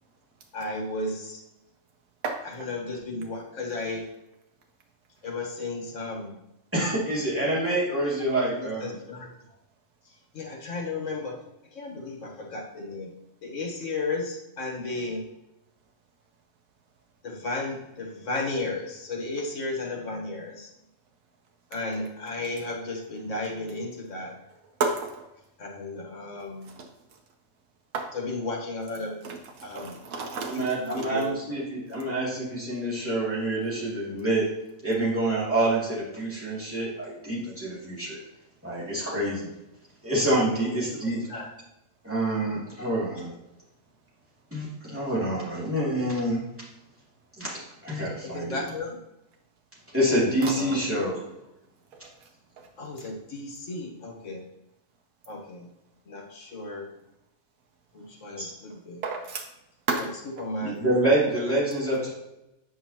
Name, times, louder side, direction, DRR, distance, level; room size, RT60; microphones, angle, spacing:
voice 1, 0.5-1.4 2.4-4.1 5.2-6.4 8.6-9.3 10.3-13.1 13.4-15.2 17.2-20.7 21.7-24.4 25.6-26.8 28.1-29.9 30.5-31.3 40.7-40.8 41.3-41.5 48.3-49.0 50.5-50.8 52.8-54.4 55.3-55.7 56.1-56.9 57.9-59.0 60.0-60.1 60.4-60.9, left 2 dB, 65° left, 0 dB, 1.7 m, -34 dB
voice 2, 6.7-8.9 30.5-34.5 34.8-38.2 38.6-39.5 40.0-41.3 42.0-43.3 44.5-46.4 47.4-48.6 49.9-51.2 58.4-58.5 60.6-62.1, right 1 dB, 10° right, -8 dB, 2.6 m, -27 dB
voice 3, 24.8-25.1 26.8-26.9 27.9-28.1 29.2-30.6 59.0-59.4 59.9-60.1, right 4 dB, 85° right, 2 dB, 1.2 m, -30 dB
8.4 x 5.5 x 2.9 m, 0.92 s
omnidirectional pair, 1.4 m